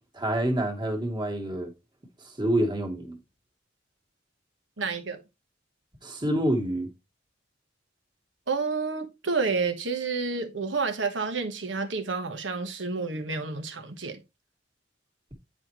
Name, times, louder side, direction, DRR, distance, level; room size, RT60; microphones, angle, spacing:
voice 1, 0.1-1.7 2.4-3.2 6.0-6.9, right 1 dB, 25° right, 1.6 m, -27 dB
voice 2, 4.8-5.2 8.5-14.2, right 4 dB, 80° right, 1.3 m, -29 dB
9.6 x 4.3 x 3.1 m
head